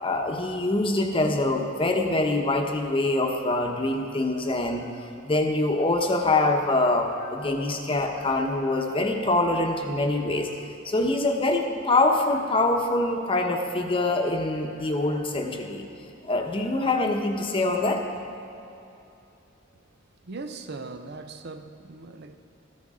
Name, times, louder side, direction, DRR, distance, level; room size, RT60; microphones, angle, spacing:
voice 1, 0.0-10.5 10.8-15.8 16.3-18.0, left 2 dB, 25° left, 3 dB, 0.9 m, -24 dB
voice 2, 20.2-22.4, right 3 dB, 55° right, 8 dB, 0.6 m, -39 dB
14.0 x 13.0 x 3.7 m, 2.9 s
head